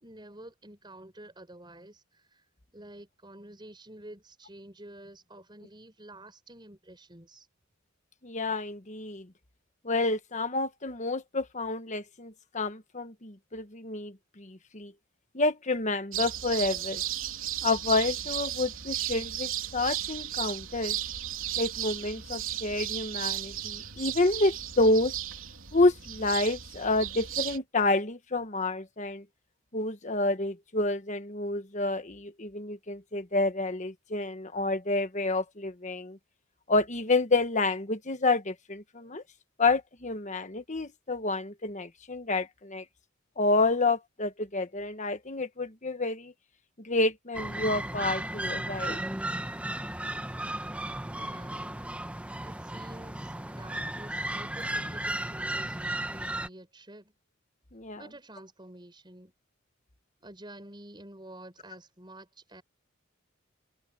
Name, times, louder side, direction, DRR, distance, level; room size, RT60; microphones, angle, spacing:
voice 1, 0.0-7.5 51.1-51.7 52.4-57.1 58.0-59.3 60.2-62.6, right 1 dB, 20° right, 6.3 m, -49 dB
voice 2, 8.2-9.3 9.8-14.9 15.3-17.0 17.6-21.0 21.6-25.1 25.7-29.2 29.7-36.2 36.7-39.2 39.6-42.8 43.4-46.3 46.8-49.0 57.7-58.0, left 2 dB, 35° left, 1.3 m, -29 dB
sound 1, 16.1-27.6, right 11 dB, 70° right, 3.8 m, -35 dB
sound 2, 47.3-56.5, right 1 dB, 5° right, 1.1 m, -35 dB
head